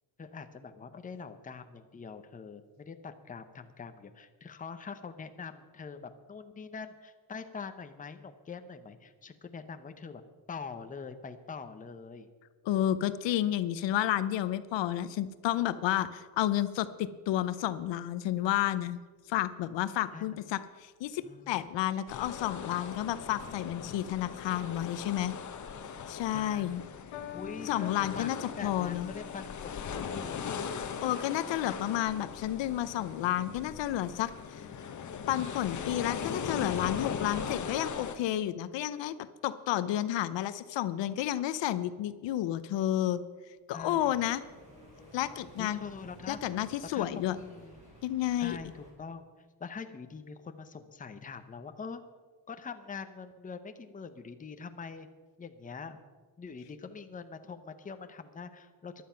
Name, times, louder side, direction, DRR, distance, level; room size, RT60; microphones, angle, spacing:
voice 1, 0.2-10.2 10.5-12.3 20.1-20.3 21.2-21.6 26.3-26.8 27.3-28.3 28.6-30.9 43.7-44.2 45.6-46.5 46.9-47.8 48.4-49.3 49.6-52.0 52.5-55.1 55.4-56.0 56.4-59.1, left 5 dB, 15° left, 8 dB, 0.8 m, -44 dB
voice 2, 12.7-19.0 19.3-25.3 26.1-26.8 27.6-29.1 30.8-34.7 35.3-39.2 39.4-43.2 43.7-44.4 45.1-45.8 46.3-47.4 48.0-48.6, left 12 dB, 65° left, 13 dB, 0.7 m, -31 dB
sound 1, 22.1-38.2, left 6 dB, 35° left, 1.2 m, -39 dB
sound 2, 27.1-33.6 34.5-34.9, left 8 dB, 80° left, 1.5 m, -49 dB
sound 3, 43.7-48.9, equal, 15° right, 5.1 m, -54 dB
15.0 x 11.5 x 5.7 m, 1.4 s
cardioid pair, 145°, 48 cm